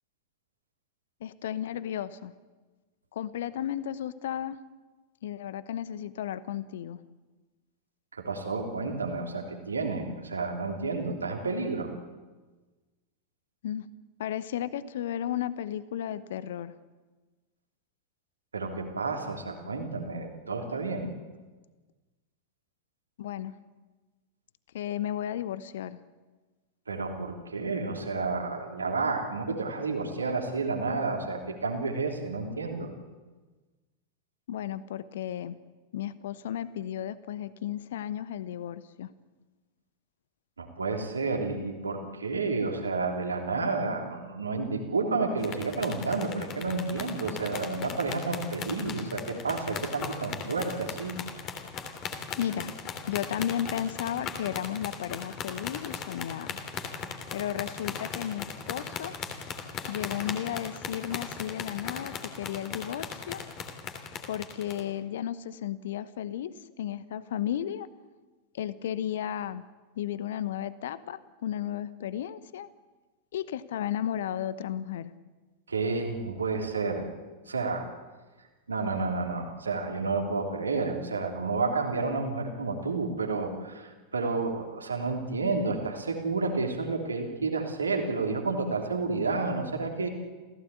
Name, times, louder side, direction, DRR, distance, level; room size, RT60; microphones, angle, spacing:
voice 1, 1.2-2.3 3.1-4.6 5.2-7.0 13.6-13.9 14.2-16.7 23.2-23.5 24.7-26.0 34.5-35.6 35.9-39.1 52.4-52.7 53.1-56.6 57.3-59.1 59.9-63.4 64.3-67.9 68.5-69.6 70.0-72.7 73.3-75.1, left 10 dB, 60° left, 17 dB, 0.9 m, -34 dB
voice 2, 8.1-11.9 18.5-21.1 26.9-32.9 40.6-51.1 75.7-77.1 77.5-77.9 78.7-90.1, right 3 dB, 75° right, 3 dB, 3.2 m, -30 dB
sound 1, 45.4-64.8, left 6 dB, 35° left, 3.0 m, -39 dB
28.0 x 16.5 x 8.4 m, 1.3 s
figure-of-eight pair, 90°, 0 cm